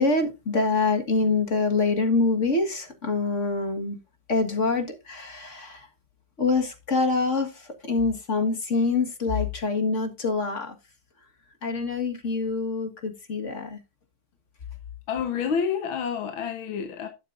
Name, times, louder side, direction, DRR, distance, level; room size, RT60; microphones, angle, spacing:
voice 1, 0.0-4.0 4.3-5.9 6.4-10.8 11.6-13.8, left 3 dB, 35° left, 1.9 m, -25 dB
voice 2, 15.1-17.1, left 7 dB, 75° left, 1.9 m, -28 dB
11.5 x 9.0 x 2.6 m
omnidirectional pair, 2.3 m